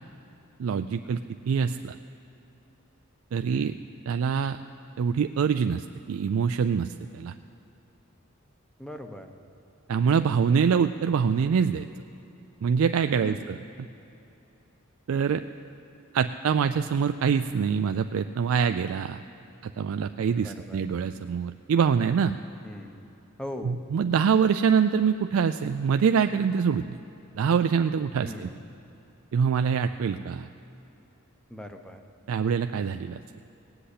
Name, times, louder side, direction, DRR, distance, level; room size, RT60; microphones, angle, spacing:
voice 1, 0.6-1.2 1.5-2.0 3.3-3.7 4.1-4.6 5.0-7.3 9.9-11.9 12.6-13.6 15.1-15.4 16.1-19.2 19.6-22.3 23.7-27.0 27.4-28.5 29.3-30.5 32.3-33.2, right 6 dB, 70° right, 8 dB, 0.3 m, -25 dB
voice 2, 3.4-3.8 8.8-9.3 13.2-13.6 20.4-20.9 22.6-23.0 23.4-23.8 28.2-28.7 31.5-32.0, left 1 dB, 5° left, 5 dB, 0.8 m, -40 dB
18.0 x 7.8 x 8.4 m, 3.0 s
head